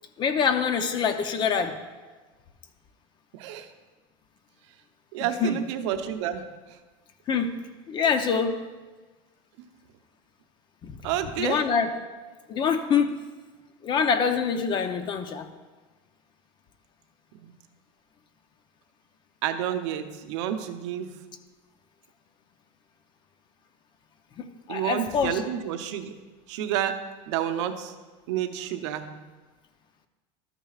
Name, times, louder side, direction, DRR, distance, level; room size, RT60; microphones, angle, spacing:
voice 1, 0.2-1.8 5.2-5.6 7.3-7.6 7.9-8.6 10.8-11.0 11.4-11.9 12.5-13.2 13.8-15.5 24.4-25.4, left 6 dB, 30° left, 8 dB, 0.7 m, -25 dB
voice 2, 3.3-3.7 5.1-6.8 9.6-9.7 11.0-11.6 17.3-17.5 19.4-21.1 24.7-26.1 26.5-27.0 27.3-27.9 28.3-29.2, right 10 dB, 80° right, 7 dB, 0.8 m, -30 dB
13.0 x 9.0 x 2.4 m, 1.3 s
supercardioid pair, 145°, 15 cm